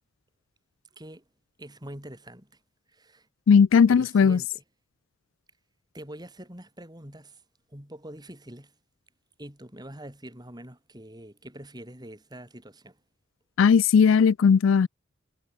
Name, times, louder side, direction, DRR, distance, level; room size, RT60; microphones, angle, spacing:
voice 1, 1.6-2.6 2.9-3.3 3.9-4.6 5.9-7.4 7.7-8.7 9.4-13.0, right 1 dB, 20° right, 6.1 m, -44 dB
voice 2, 3.5-4.4 13.6-14.9, left 6 dB, 65° left, 0.4 m, -18 dB
head